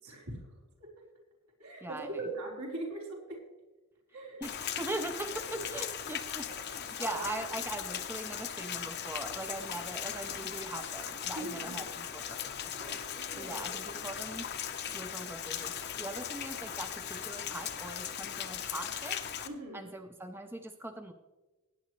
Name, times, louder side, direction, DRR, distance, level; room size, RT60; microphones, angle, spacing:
voice 1, 0.0-0.4 0.8-0.9 1.6-3.4 4.1-4.4 4.8-5.0 5.5-5.7 7.0-7.5 11.3-11.9 12.8-13.7 19.4-19.8, right 2 dB, 80° right, -2 dB, 4.2 m, -41 dB
voice 2, 1.8-2.2 4.4-12.4 12.6-13.0 13.4-14.5 14.9-19.2 19.7-21.1, right 2 dB, 10° right, 6 dB, 0.5 m, -41 dB
Rain, 4.4-19.5, left 9 dB, 45° left, 0.8 m, -38 dB
19.0 x 9.4 x 3.2 m, 1.1 s
head